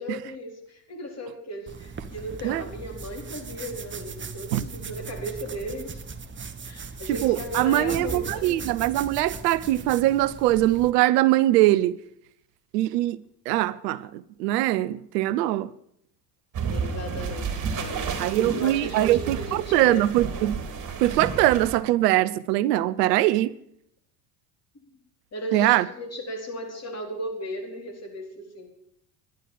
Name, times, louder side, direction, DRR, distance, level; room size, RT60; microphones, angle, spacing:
voice 1, 0.0-6.0 6.6-8.6 16.7-20.0 25.3-28.7, equal, 30° left, 4.3 m, -36 dB
sound 1, 1.7-10.9, right 5 dB, 25° right, 1.3 m, -38 dB
voice 2, 7.2-12.0 12.7-13.2 13.5-14.1 14.4-15.7 18.2-20.6 21.0-23.5 25.5-25.8, right 15 dB, 70° right, 0.7 m, -22 dB
sound 2, 16.5-21.8, right 5 dB, 40° right, 3.3 m, -31 dB
11.5 x 10.5 x 7.4 m
hypercardioid pair, 70°, 50 cm